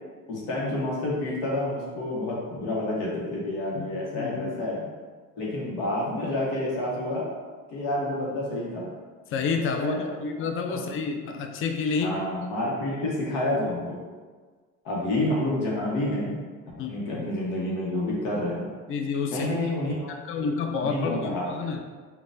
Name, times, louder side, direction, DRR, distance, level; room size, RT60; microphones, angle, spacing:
voice 1, 0.3-4.9 5.4-7.3 7.7-8.9 9.7-10.1 10.7-10.8 12.0-14.0 14.8-16.4 16.9-18.7 19.3-20.5 20.8-21.7, left 1 dB, 85° left, -4 dB, 0.9 m, -29 dB
voice 2, 3.7-4.6 9.3-12.2 16.8-17.3 18.9-19.5 20.1-21.8, left 5 dB, 35° left, 4 dB, 0.4 m, -29 dB
3.9 x 2.2 x 2.5 m, 1.5 s
supercardioid pair, 85°, 36 cm